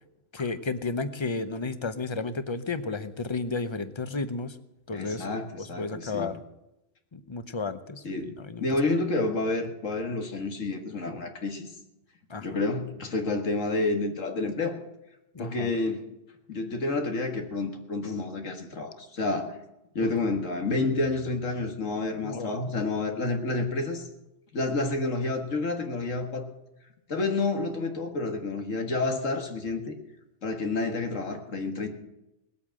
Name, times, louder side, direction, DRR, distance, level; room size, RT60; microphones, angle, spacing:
voice 1, 0.3-4.6 4.9-5.3 5.6-6.4 7.1-8.6 12.3-12.6 15.3-15.7 22.2-22.5, left 3 dB, 25° left, 11 dB, 0.7 m, -32 dB
voice 2, 4.9-6.3 8.0-8.3 8.6-11.7 12.4-14.8 15.4-16.0 16.5-19.5 20.0-24.1 24.5-26.5 27.1-30.0 30.4-31.9, left 3 dB, 80° left, 4 dB, 2.1 m, -29 dB
19.0 x 8.4 x 7.5 m, 0.91 s
omnidirectional pair, 1.3 m